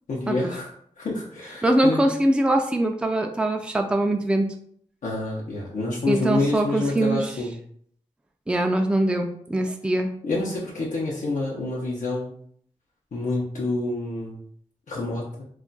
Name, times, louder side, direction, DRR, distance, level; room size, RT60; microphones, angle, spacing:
voice 1, 0.1-0.7 1.0-2.0 5.0-7.6 10.2-12.3 13.1-14.4 14.9-15.4, left 2 dB, 85° left, -5 dB, 0.6 m, -27 dB
voice 2, 1.6-4.5 6.1-7.3 8.5-10.1, right 1 dB, 10° right, 4 dB, 0.3 m, -22 dB
2.4 x 2.2 x 3.8 m, 0.63 s
cardioid pair, 50°, 13 cm